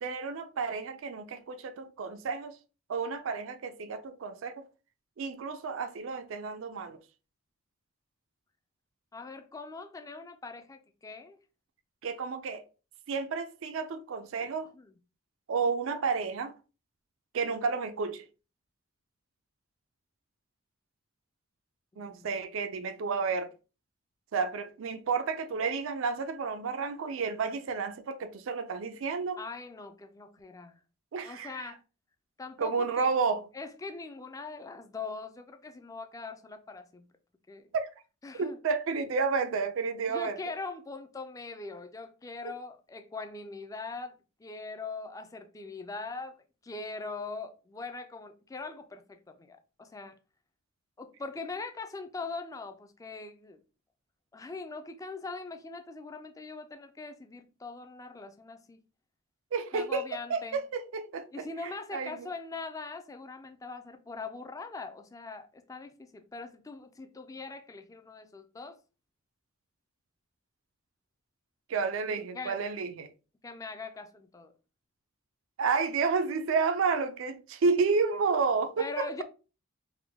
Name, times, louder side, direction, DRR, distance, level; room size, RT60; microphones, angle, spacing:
voice 1, 0.0-2.6 2.9-4.6 5.2-7.0 12.0-12.6 13.1-14.7 15.5-16.5 17.3-18.2 22.0-23.5 24.3-29.4 31.1-31.7 32.6-33.4 37.7-37.9 38.4-40.4 42.4-42.5 59.5-62.3 71.7-73.1 75.6-79.1, right 5 dB, 70° right, 0.4 m, -31 dB
voice 2, 9.1-11.4 14.4-14.9 21.9-22.3 29.4-30.8 31.2-31.8 32.4-33.1 33.5-37.1 37.5-37.7 38.2-38.6 40.1-46.4 46.6-50.2 51.0-53.6 54.3-58.8 59.7-60.6 61.3-68.8 72.0-72.7 73.4-74.5 78.8-79.2, left 3 dB, 15° left, 0.3 m, -42 dB
3.4 x 2.2 x 3.4 m
head